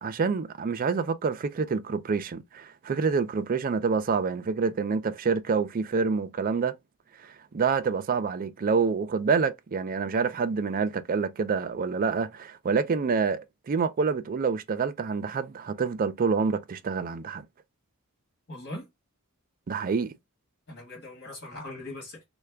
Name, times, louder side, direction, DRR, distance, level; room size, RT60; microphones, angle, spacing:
voice 1, 0.0-6.8 7.2-13.4 13.7-17.4 19.7-20.1, right 5 dB, 40° right, 0.4 m, -27 dB
voice 2, 18.5-18.9 20.7-22.2, left 1 dB, 50° left, 1.9 m, -40 dB
3.3 x 2.2 x 3.4 m
head